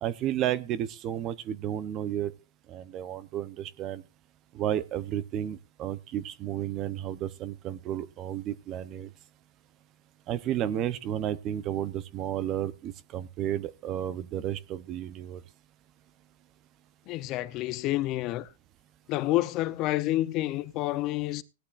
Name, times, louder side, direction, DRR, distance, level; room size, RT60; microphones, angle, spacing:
voice 1, 0.0-2.3 2.7-4.0 4.5-9.1 10.3-15.4, right 11 dB, 25° right, 0.7 m, -32 dB
voice 2, 17.1-18.5 19.1-21.4, left 16 dB, 30° left, 0.6 m, -29 dB
18.0 x 12.0 x 2.5 m
supercardioid pair, 160°, 0 cm